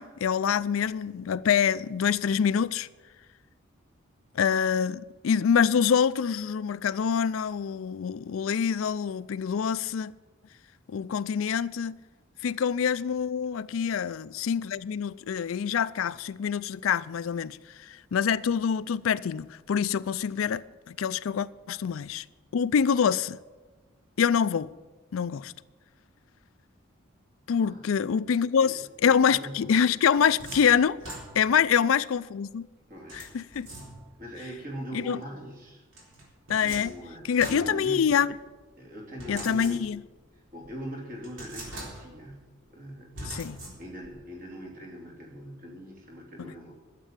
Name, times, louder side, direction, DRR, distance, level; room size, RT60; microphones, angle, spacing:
voice 1, 0.0-2.9 4.3-10.1 10.9-11.9 12.4-22.2 22.5-23.4 24.2-24.7 25.1-25.5 27.5-31.0 31.3-32.7 33.1-33.7 34.9-35.2 36.5-36.9 37.3-38.3 39.3-40.0 43.3-43.6, left 7 dB, 80° left, 0.4 m, -26 dB
voice 2, 27.6-28.1 28.6-29.7 30.2-30.3 31.5-31.8 32.9-33.4 34.2-35.8 36.6-38.3 38.8-39.8 40.3-46.7, equal, 40° right, 2.9 m, -42 dB
sound 1, 29.7-31.7 33.1-34.3 35.9-38.4 39.2-40.2 40.6-40.7 41.2-42.3 43.1-44.2, right 1 dB, 70° right, 3.9 m, -43 dB
12.5 x 7.6 x 8.7 m
head